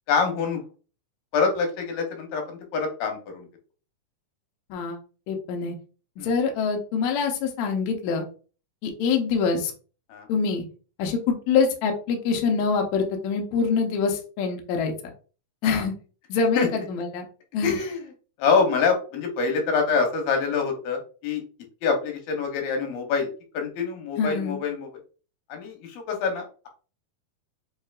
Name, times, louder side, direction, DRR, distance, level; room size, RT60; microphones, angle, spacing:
voice 1, 0.1-0.6 1.3-3.5 6.2-6.3 10.1-10.3 15.6-15.8 16.6-16.7 17.6-18.0 18.4-21.4 21.8-23.3 23.5-24.9 25.5-26.7, left 5 dB, 90° left, 3 dB, 2.8 m, -25 dB
voice 2, 5.3-5.8 6.2-8.3 8.8-9.7 10.3-10.6 11.0-14.9 15.6-15.9 16.3-17.3 17.5-17.8 24.2-24.6, left 5 dB, 70° left, 3 dB, 1.9 m, -25 dB
7.3 x 2.6 x 2.4 m, 0.37 s
omnidirectional pair, 4.0 m